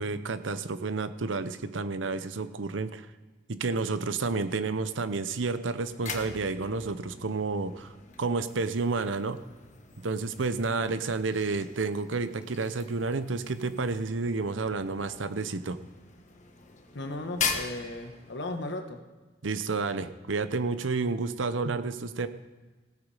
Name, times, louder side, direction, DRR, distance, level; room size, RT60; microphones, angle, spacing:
voice 1, 0.0-3.1 3.5-9.4 10.0-15.8 19.4-22.3, right 3 dB, 85° right, 12 dB, 0.7 m, -30 dB
sound 1, 5.7-18.7, left 5 dB, 40° left, 1.3 m, -41 dB
voice 2, 16.9-19.0, left 2 dB, 65° left, 5 dB, 1.3 m, -36 dB
17.0 x 8.3 x 4.9 m, 1.3 s
head